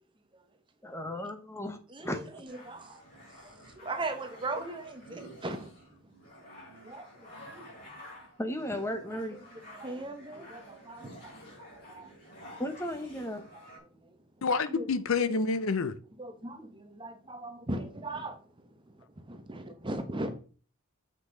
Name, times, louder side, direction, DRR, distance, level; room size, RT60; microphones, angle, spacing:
voice 1, 0.8-2.3 8.4-9.4 12.6-13.4, left 1 dB, 10° left, 0.9 m, -35 dB
voice 2, 1.9-3.0 3.4-5.7 6.8-7.7 9.1-9.2 9.5-12.2 13.5-14.2 14.7-14.9 16.2-18.8 19.3-20.3, right 2 dB, 20° right, 0.9 m, -39 dB
sound 1, 2.4-13.8, equal, 40° left, 4.8 m, -51 dB
voice 3, 14.4-15.9, left 4 dB, 65° left, 0.6 m, -28 dB
7.7 x 5.9 x 3.8 m
head